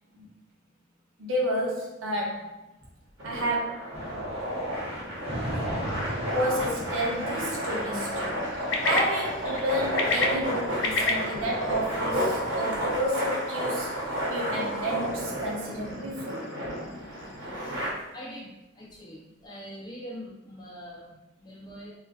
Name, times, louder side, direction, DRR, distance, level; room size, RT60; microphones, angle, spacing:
voice 1, 1.2-2.7 3.2-4.0 6.3-16.5, right 1 dB, 85° right, -3 dB, 0.8 m, -31 dB
sound 1, 3.2-17.9, equal, 60° right, 1.1 m, -31 dB
sound 2, 3.9-13.0, equal, 25° right, 0.8 m, -38 dB
sound 3, 5.9-17.5, left 3 dB, 60° left, 0.4 m, -35 dB
voice 2, 18.1-21.9, equal, 20° left, -4 dB, 0.6 m, -43 dB
3.6 x 2.4 x 2.4 m, 1.0 s
head